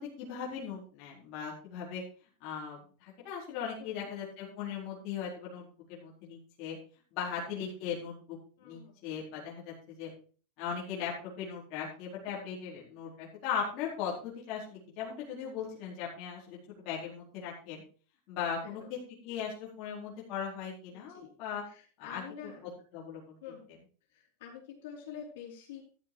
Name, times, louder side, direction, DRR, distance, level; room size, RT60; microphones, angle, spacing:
voice 1, 0.0-2.0 2.4-6.8 7.1-10.1 10.6-17.8 18.3-19.0 19.2-21.6 22.0-22.2 22.6-23.4, left 7 dB, 35° left, -5 dB, 4.2 m, -38 dB
voice 2, 3.8-4.1 7.4-7.7 8.6-9.1 18.6-19.0 20.9-21.3 21.7-22.8 23.4-23.7 24.1-25.8, left 7 dB, 60° left, -2 dB, 4.5 m, -48 dB
13.0 x 7.2 x 4.7 m, 0.40 s
supercardioid pair, 175°, 0 cm